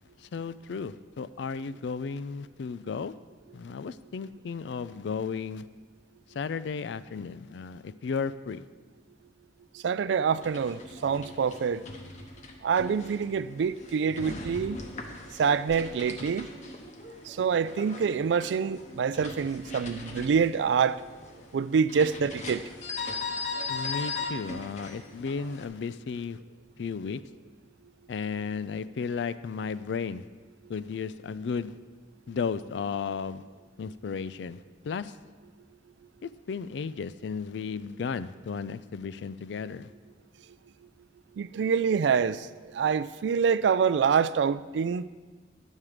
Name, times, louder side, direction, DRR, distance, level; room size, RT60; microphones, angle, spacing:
voice 1, 0.2-3.1 3.5-5.6 6.3-8.7 23.7-26.4 26.8-27.2 28.1-30.3 30.7-31.8 32.3-33.4 33.8-35.2 36.2-39.9, left 5 dB, 80° left, 0.4 m, -34 dB
voice 2, 9.8-11.8 12.6-14.8 15.4-16.5 17.3-21.0 21.5-22.6 41.4-42.5 42.7-45.1, right 6 dB, 80° right, 0.3 m, -26 dB
sound 1, 10.3-25.7, left 3 dB, 40° left, 0.9 m, -39 dB
10.5 x 7.3 x 4.9 m
head